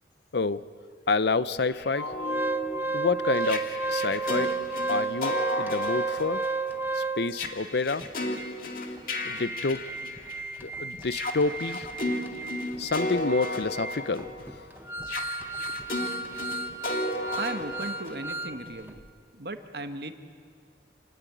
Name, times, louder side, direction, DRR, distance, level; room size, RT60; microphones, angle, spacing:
voice 1, 1.1-2.1 2.9-4.5 4.9-6.4 6.9-8.0 9.2-9.8 10.6-11.9 12.8-14.3, left 3 dB, 65° left, 15 dB, 0.6 m, -28 dB
sound 1, 1.7-10.6 11.0-18.8, left 2 dB, 50° left, 2.2 m, -35 dB
Organ, 1.9-7.5 8.0-8.1 8.4-8.5 9.0-18.6 18.9-19.0, right 3 dB, 10° right, 0.9 m, -33 dB
voice 2, 17.4-19.0 19.3-20.1, right 2 dB, 60° right, 7 dB, 1.4 m, -36 dB
27.0 x 19.0 x 9.3 m, 2.2 s
head